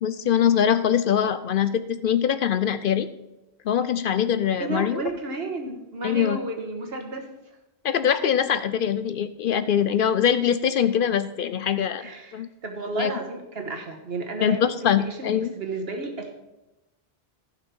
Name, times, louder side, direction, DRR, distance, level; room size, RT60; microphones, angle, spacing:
voice 1, 0.0-3.1 3.6-5.0 6.0-6.4 7.8-12.5 13.0-13.1 14.4-15.5, left 9 dB, 65° left, 13 dB, 0.7 m, -23 dB
voice 2, 4.6-7.3 12.0-14.6 15.0-16.3, right 3 dB, 70° right, 4 dB, 1.6 m, -32 dB
15.0 x 5.9 x 4.5 m, 0.95 s
omnidirectional pair, 1.1 m